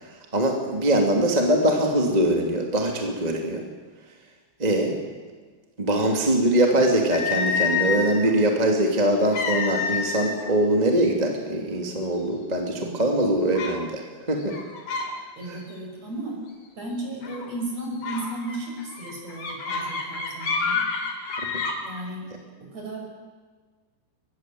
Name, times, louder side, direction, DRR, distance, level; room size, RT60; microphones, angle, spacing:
voice 1, 0.3-3.6 4.6-5.0 5.8-14.0 14.3-14.5 15.5-15.6, right 1 dB, 15° right, 1 dB, 1.7 m, -22 dB
sound 1, 7.1-8.3 9.3-10.5 10.8-11.1 11.7-11.8 12.3-12.8 13.5-13.8 14.4-15.1 15.4-15.8 17.2-17.5 18.0-21.8, left 5 dB, 60° left, 4.2 m, -28 dB
voice 2, 15.4-16.4 16.8-20.8 21.8-22.3 22.6-23.1, right 2 dB, 40° right, 0 dB, 6.9 m, -35 dB
23.5 x 21.5 x 7.8 m, 1.4 s
omnidirectional pair, 4.7 m